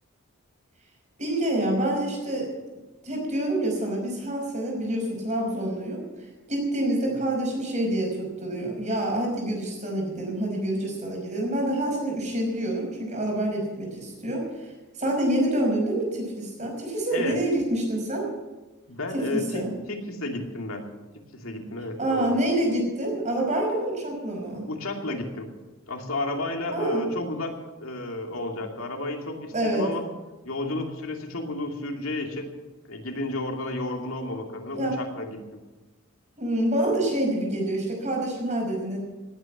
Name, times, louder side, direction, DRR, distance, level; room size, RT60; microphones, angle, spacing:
voice 1, 1.2-2.5 3.0-6.0 6.5-14.7 15.0-18.3 19.1-19.7 22.0-24.7 26.7-27.0 29.5-29.9 34.7-35.0 36.4-39.0, right 1 dB, 35° right, 1 dB, 5.4 m, -27 dB
voice 2, 18.9-19.6 19.9-20.9 21.3-22.4 24.7-25.5 25.9-27.5 27.8-30.0 30.4-32.5 32.9-35.6, left 2 dB, 80° left, 2 dB, 2.6 m, -32 dB
18.5 x 9.1 x 7.3 m, 1.1 s
head